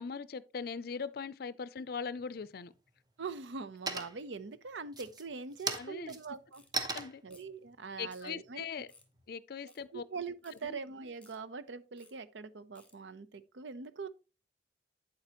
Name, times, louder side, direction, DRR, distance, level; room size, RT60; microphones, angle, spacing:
voice 1, 0.0-2.7 5.7-6.2 6.9-7.2 8.0-8.9 9.3-10.0 10.6-10.8, left 5 dB, 55° left, 0.4 m, -40 dB
sound 1, 2.2-2.8 3.2-3.6 3.9-4.4 4.9-9.3, right 3 dB, 20° right, 0.8 m, -39 dB
voice 2, 3.2-6.6 7.2-8.8 9.6-14.1, right 4 dB, 90° right, 0.7 m, -43 dB
sound 2, 6.5-6.8 7.3-7.6 8.1-8.3 8.9-9.1 9.7-9.8 10.4-10.6 11.2-11.4 12.0-12.1 12.8-13.0, left 3 dB, 5° left, 1.6 m, -62 dB
8.7 x 7.5 x 2.9 m
head